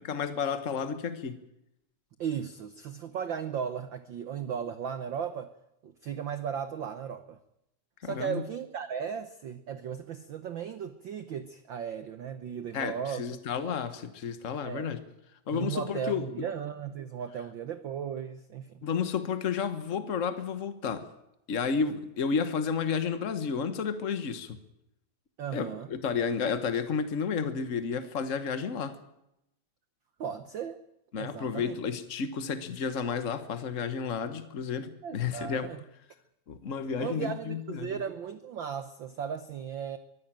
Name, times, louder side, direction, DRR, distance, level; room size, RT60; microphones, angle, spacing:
voice 1, 0.1-1.4 8.0-8.4 12.7-15.0 15.5-16.5 18.8-21.1 21.5-24.6 25.5-29.0 31.1-35.7 36.5-38.0, left 6 dB, 75° left, 0.7 m, -31 dB
voice 2, 2.2-5.5 5.8-7.4 8.0-13.2 14.6-14.9 15.5-18.8 25.4-25.9 30.2-30.8 31.2-31.8 35.0-35.8 37.0-40.0, right 8 dB, 80° right, 1.0 m, -36 dB
24.0 x 15.0 x 8.9 m
omnidirectional pair, 3.4 m